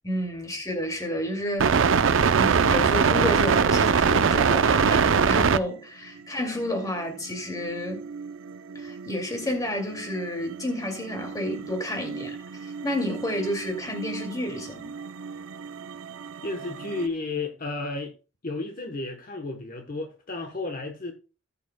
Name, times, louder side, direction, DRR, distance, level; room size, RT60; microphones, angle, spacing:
voice 1, 0.0-1.8 2.3-8.1 8.7-14.9, left 1 dB, 20° left, 2.4 m, -31 dB
sound 1, 1.6-5.6 6.6-6.8 7.6-9.6 9.9-17.1, right 6 dB, 75° right, 0.5 m, -24 dB
voice 2, 16.4-18.1 18.4-21.1, left 3 dB, 45° left, 1.0 m, -32 dB
18.5 x 7.0 x 2.2 m
head